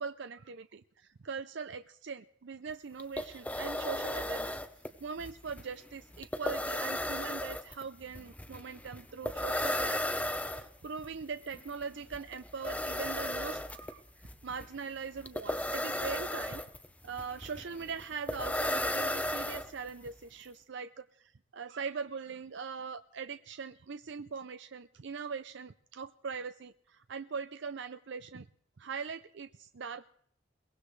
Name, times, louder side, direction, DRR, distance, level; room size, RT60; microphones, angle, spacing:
voice 1, 0.0-4.6 5.0-10.2 10.5-16.6 17.0-28.5 28.8-30.0, right 5 dB, 65° right, 11 dB, 0.6 m, -41 dB
sound 1, 2.7-2.8 3.0-20.1, left 1 dB, 10° left, 0.9 m, -36 dB
22.5 x 19.0 x 3.3 m, 0.65 s
head